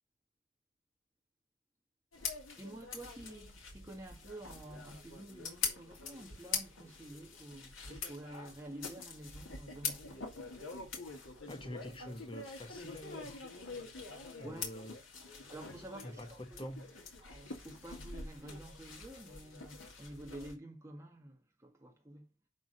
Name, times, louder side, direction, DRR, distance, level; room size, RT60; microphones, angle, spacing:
sound 1, 2.1-20.5, left 5 dB, 90° left, 2.7 m, -44 dB
voice 1, 2.6-10.2 14.4-14.7 15.5-16.7 17.2-22.3, right 1 dB, 15° right, 1.7 m, -50 dB
voice 2, 11.5-13.4 14.4-14.9 16.0-16.9, left 1 dB, 25° left, 1.4 m, -46 dB
10.5 x 3.8 x 5.6 m
head